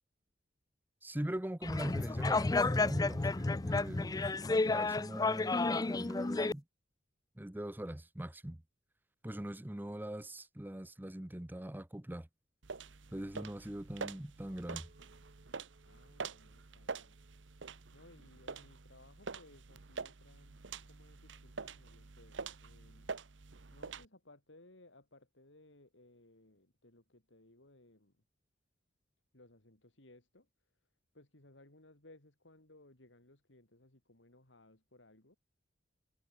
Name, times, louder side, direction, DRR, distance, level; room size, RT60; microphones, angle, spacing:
voice 1, 1.0-4.2 4.7-6.6 7.4-8.6 9.2-12.3 13.1-14.9, right 1 dB, 10° right, 0.8 m, -41 dB
sound 1, 1.6-6.5, left 3 dB, 20° left, 0.4 m, -31 dB
sound 2, 12.6-24.1, right 4 dB, 85° right, 1.0 m, -46 dB
voice 2, 13.5-14.0 15.9-17.2 17.9-23.1 23.7-28.2 29.3-30.5 31.1-35.4, left 2 dB, 85° left, 3.6 m, -62 dB
Chink clink, 14.4-18.8 19.1-19.8, right 2 dB, 50° right, 6.8 m, -71 dB
head